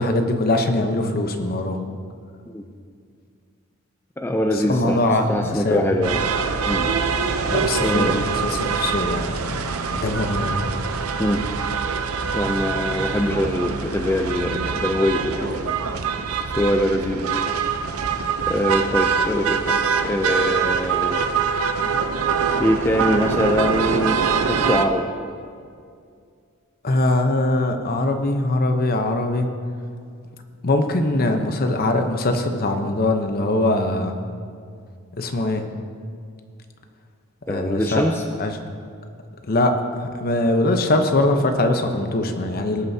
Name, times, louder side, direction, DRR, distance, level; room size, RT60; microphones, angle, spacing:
voice 1, 0.0-1.8 4.5-5.9 7.5-10.6 26.8-29.5 30.6-34.1 35.1-35.6 37.5-38.1 38.4-38.6 39.5-42.8, left 2 dB, 45° left, 5 dB, 0.9 m, -22 dB
voice 2, 4.2-5.0 5.3-6.2 6.6-6.9 7.8-8.2 11.2-11.4 12.3-15.6 16.4-17.4 18.5-21.2 22.6-25.1 37.5-38.2, equal, 10° left, 3 dB, 0.4 m, -23 dB
sound 1, 6.0-24.9, right 6 dB, 70° right, 0.7 m, -24 dB
19.0 x 9.2 x 2.8 m, 2.2 s
head